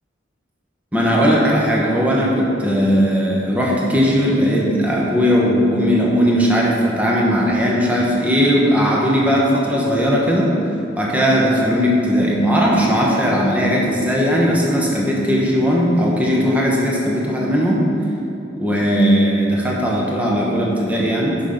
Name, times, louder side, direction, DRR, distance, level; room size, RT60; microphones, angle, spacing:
voice 1, 0.9-10.5 11.0-17.8 18.6-21.4, equal, 10° right, -4 dB, 0.9 m, -17 dB
6.1 x 5.7 x 5.1 m, 2.9 s
head